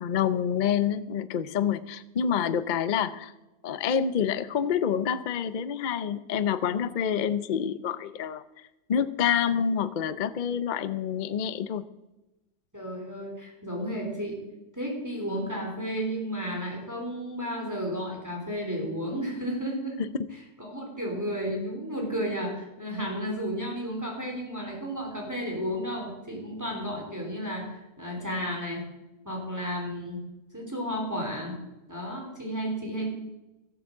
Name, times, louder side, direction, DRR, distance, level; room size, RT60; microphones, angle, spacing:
voice 1, 0.0-3.3 3.6-8.4 8.9-11.8, left 8 dB, 55° left, 14 dB, 0.5 m, -27 dB
voice 2, 12.7-14.4 14.7-20.0 20.3-28.8 29.2-30.2 30.5-31.6 31.9-33.1, equal, 10° right, 0 dB, 3.3 m, -33 dB
14.5 x 8.2 x 7.2 m, 1.0 s
omnidirectional pair, 1.7 m